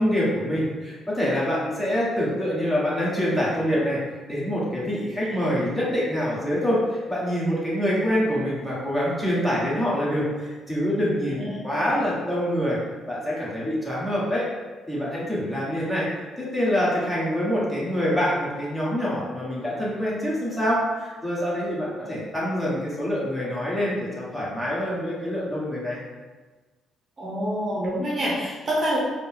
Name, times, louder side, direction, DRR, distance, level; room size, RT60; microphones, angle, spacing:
voice 1, 0.0-4.0 4.3-12.8 13.1-14.5 14.9-16.1 16.4-26.0, equal, 10° left, -7 dB, 1.3 m, -25 dB
voice 2, 27.2-29.0, equal, 40° right, -4 dB, 0.9 m, -27 dB
3.9 x 2.0 x 3.7 m, 1.3 s
cardioid pair, 90°, 0 cm